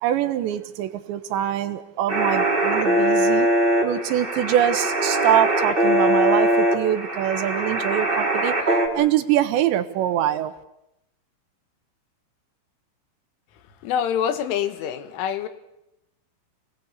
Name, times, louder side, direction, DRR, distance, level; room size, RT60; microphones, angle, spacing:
voice 1, 0.0-3.5 3.8-8.6 8.9-10.5, right 11 dB, 75° right, 3.3 m, -24 dB
sound 1, 2.1-8.9, right 1 dB, 15° right, 3.2 m, -21 dB
voice 2, 13.8-15.5, left 9 dB, 90° left, 4.1 m, -25 dB
27.5 x 20.0 x 8.2 m
omnidirectional pair, 5.4 m